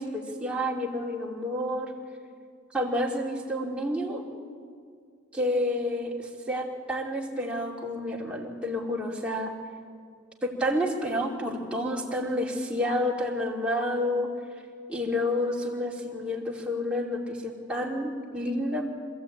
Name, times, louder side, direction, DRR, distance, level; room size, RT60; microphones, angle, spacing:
voice 1, 0.0-1.9 2.7-4.2 5.3-9.5 10.4-14.3 14.9-18.9, left 1 dB, 5° right, -3 dB, 2.7 m, -29 dB
26.5 x 15.5 x 8.7 m, 2.2 s
head